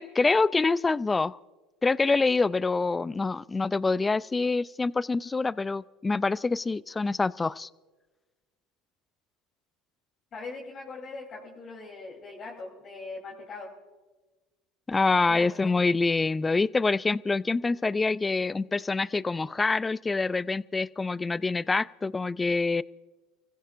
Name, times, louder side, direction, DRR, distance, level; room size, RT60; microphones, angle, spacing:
voice 1, 0.0-1.4 1.8-7.7 14.9-22.8, left 3 dB, 15° left, 20 dB, 0.4 m, -26 dB
voice 2, 10.3-13.7 15.3-15.8, left 3 dB, 40° left, -3 dB, 3.5 m, -41 dB
29.5 x 15.5 x 2.5 m, 1.3 s
supercardioid pair, 100°, 0 cm